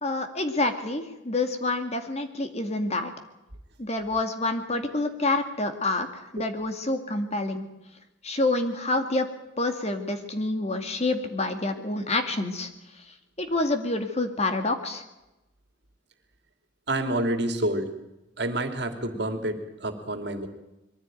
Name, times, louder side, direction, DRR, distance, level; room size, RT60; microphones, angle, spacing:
voice 1, 0.0-3.1 3.8-7.7 8.2-9.3 9.6-12.7 13.0-15.0, left 2 dB, 35° left, 6 dB, 2.2 m, -28 dB
voice 2, 16.9-17.9 18.4-20.5, right 1 dB, 60° right, 6 dB, 2.8 m, -28 dB
22.5 x 15.0 x 9.1 m, 0.96 s
head